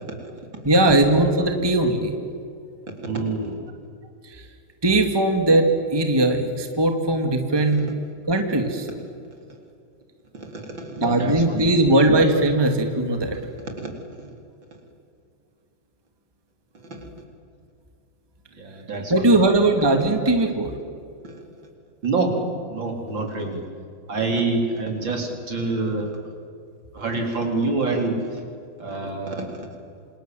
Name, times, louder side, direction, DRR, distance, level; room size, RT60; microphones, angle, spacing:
voice 1, 0.6-2.1 4.8-7.8 8.3-8.9 11.0-13.3 19.1-20.7, right 2 dB, 10° right, 4 dB, 2.2 m, -19 dB
voice 2, 3.0-3.6 7.7-7.9 10.3-11.7 13.7-13.9 14.2-14.3 16.9-17.1 18.6-19.4 21.2-21.4 22.0-22.3 22.7-23.6 24.1-26.1 26.9-28.3 28.8-29.6, right 3 dB, 60° right, 2 dB, 4.6 m, -27 dB
27.5 x 27.5 x 7.8 m, 2.4 s
omnidirectional pair, 2.3 m